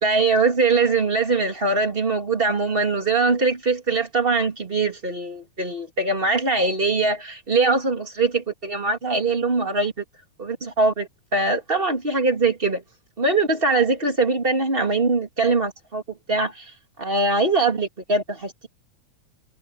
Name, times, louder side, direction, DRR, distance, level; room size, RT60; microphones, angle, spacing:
voice 1, 0.0-10.0 10.4-12.8 13.2-16.0 16.3-16.7 17.0-18.7, right 3 dB, 20° right, 2.5 m, -22 dB
omnidirectional pair, 3.5 m